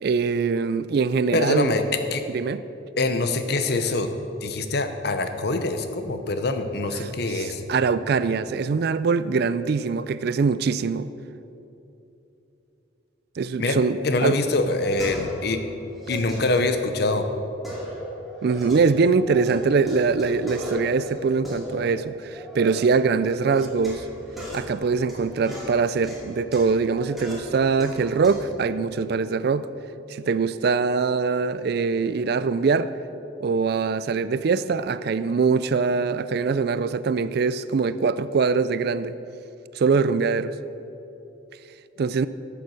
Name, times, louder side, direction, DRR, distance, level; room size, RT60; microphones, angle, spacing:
voice 1, 0.0-1.7 2.3-2.6 7.0-11.1 13.4-14.4 18.4-24.0 24.5-29.7 30.1-32.9 33.4-39.1 39.8-40.5 42.0-42.3, right 5 dB, 55° right, 15 dB, 0.3 m, -23 dB
voice 2, 1.3-1.8 2.1-2.2 3.0-4.1 4.4-7.6 13.6-13.8 14.0-15.6 16.1-17.2, left 2 dB, 55° left, 8 dB, 0.8 m, -24 dB
sound 1, 14.5-15.5 15.9-17.2 17.6-19.5 19.8-22.8 23.3-28.5, equal, ahead, 2.4 m, -37 dB
13.0 x 6.9 x 6.3 m, 2.9 s
head